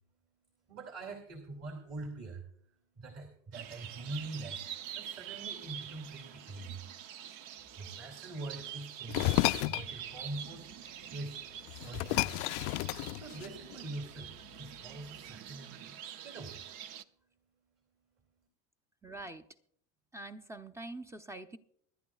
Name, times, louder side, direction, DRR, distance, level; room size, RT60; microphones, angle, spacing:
voice 1, 0.7-2.5 3.0-6.8 7.4-10.7 11.0-11.4 11.8-12.4 13.1-16.7, right 2 dB, 35° right, 2 dB, 2.6 m, -44 dB
sound 1, 3.5-17.0, right 10 dB, 55° right, 0.8 m, -46 dB
sound 2, 9.1-9.9 11.3-11.4 11.7-13.7, left 21 dB, 60° left, 0.5 m, -31 dB
voice 2, 19.0-19.4 20.1-21.6, right 2 dB, 5° right, 10 dB, 0.7 m, -44 dB
24.5 x 11.0 x 2.4 m, 0.66 s
supercardioid pair, 105°, 41 cm